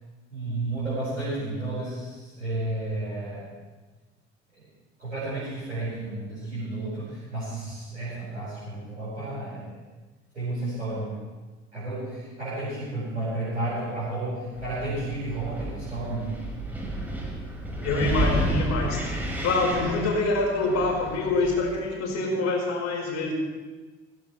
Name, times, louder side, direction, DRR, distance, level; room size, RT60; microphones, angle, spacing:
voice 1, 0.3-3.5 4.5-4.7 5.0-9.8 10.3-11.2 11.7-16.4, right 2 dB, 85° right, -11 dB, 5.1 m, -32 dB
Wind, 14.5-21.9, equal, 5° right, 5.2 m, -31 dB
voice 2, 17.8-19.0 19.4-23.3, left 2 dB, 50° left, -2 dB, 5.0 m, -25 dB
20.0 x 16.5 x 3.3 m, 1.3 s
figure-of-eight pair, 60°, 36 cm